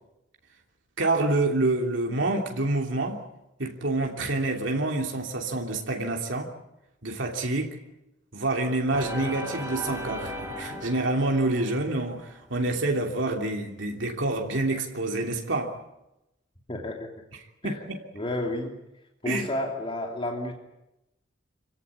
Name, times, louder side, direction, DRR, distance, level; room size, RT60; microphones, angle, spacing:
voice 1, 1.0-3.2 3.6-6.5 7.0-7.8 8.3-15.7 17.6-18.0 19.2-19.5, right 2 dB, 75° right, 1 dB, 3.1 m, -27 dB
sound 1, 8.9-12.4, equal, 15° right, 4.4 m, -37 dB
voice 2, 16.7-17.1 17.6-17.8 18.1-18.7 19.2-20.5, left 1 dB, 30° left, 0 dB, 3.2 m, -31 dB
26.5 x 17.0 x 9.8 m, 0.92 s
head